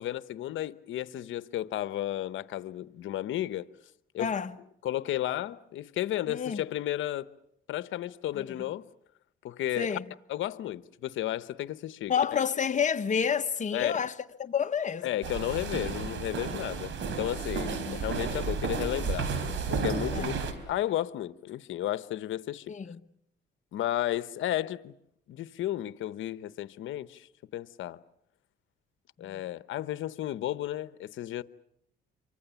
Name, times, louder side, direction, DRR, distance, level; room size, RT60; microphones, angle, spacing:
voice 1, 0.0-3.7 4.1-4.3 4.8-7.3 7.7-8.9 9.4-10.0 10.3-12.4 13.7-13.9 15.0-19.3 19.7-20.4 20.7-22.7 23.7-24.9 25.3-28.0 29.2-31.4, left 13 dB, 80° left, 1.0 m, -33 dB
voice 2, 4.2-4.6 6.3-6.6 8.3-8.6 9.8-10.0 12.1-14.1 14.4-15.1 17.6-18.0 20.1-20.4 22.7-23.0 29.2-29.4, left 7 dB, 40° left, 1.2 m, -29 dB
sound 1, 15.2-20.5, right 5 dB, 70° right, 3.9 m, -32 dB
28.5 x 24.5 x 7.0 m
cardioid pair, 90°, 20 cm